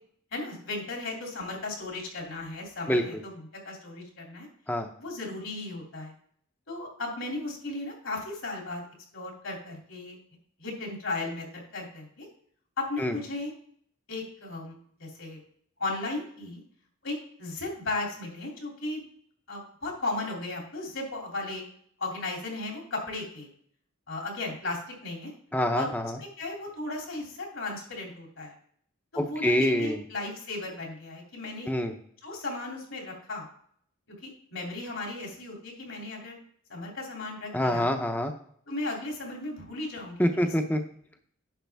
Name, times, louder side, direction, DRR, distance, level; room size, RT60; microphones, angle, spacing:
voice 1, 0.3-4.5 5.0-6.1 6.7-8.9 9.1-10.2 10.6-12.3 12.8-13.5 14.1-15.4 15.8-16.6 17.0-19.0 19.5-21.6 22.0-23.5 24.1-25.3 25.8-25.9 26.2-28.5 29.1-31.7 32.2-33.5 34.2-36.4 36.7-37.9 38.7-40.2, left 2 dB, 65° left, 0 dB, 2.9 m, -35 dB
voice 2, 25.5-26.1 29.2-30.0 31.7-31.9 37.5-38.3 40.2-40.8, equal, 10° left, 6 dB, 0.6 m, -26 dB
10.5 x 6.3 x 3.5 m, 0.63 s
head